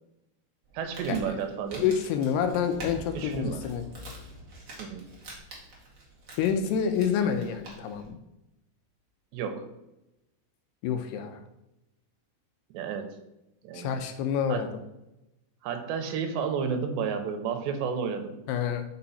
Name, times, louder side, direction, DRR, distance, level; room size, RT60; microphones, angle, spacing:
Crumpling crinkling, 0.6-8.1, right 2 dB, 50° right, 1.2 m, -47 dB
voice 1, 0.7-1.8 3.1-3.6 4.8-5.1 9.3-9.7 12.7-13.1 13.6-13.9 14.5-14.6 15.6-18.4, right 6 dB, 85° right, 6 dB, 3.0 m, -31 dB
voice 2, 1.8-3.9 6.4-8.2 10.8-11.4 13.7-14.7 18.5-18.8, left 7 dB, 80° left, 7 dB, 2.6 m, -28 dB
sound 1, 2.7-7.1, left 2 dB, 60° left, 2.0 m, -46 dB
6.9 x 5.6 x 4.1 m, 0.91 s
omnidirectional pair, 4.9 m